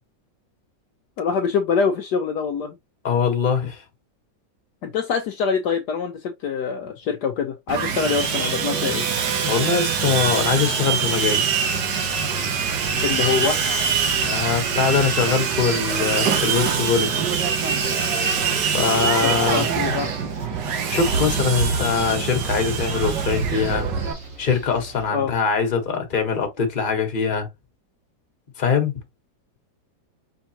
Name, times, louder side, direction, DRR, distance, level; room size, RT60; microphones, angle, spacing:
voice 1, 1.2-2.8 4.8-9.0 13.0-13.6 19.2-20.1 25.1-25.3, left 6 dB, 70° left, 1.2 m, -24 dB
voice 2, 3.0-3.8 9.4-11.6 14.2-17.2 18.7-19.7 20.9-23.9 24.4-27.5 28.6-28.9, left 5 dB, 30° left, 1.2 m, -22 dB
Sawing, 7.7-24.1, right 6 dB, 70° right, 1.6 m, -24 dB
sound 1, 11.9-25.1, right 3 dB, 45° right, 2.0 m, -36 dB
5.2 x 3.6 x 2.8 m
omnidirectional pair, 2.0 m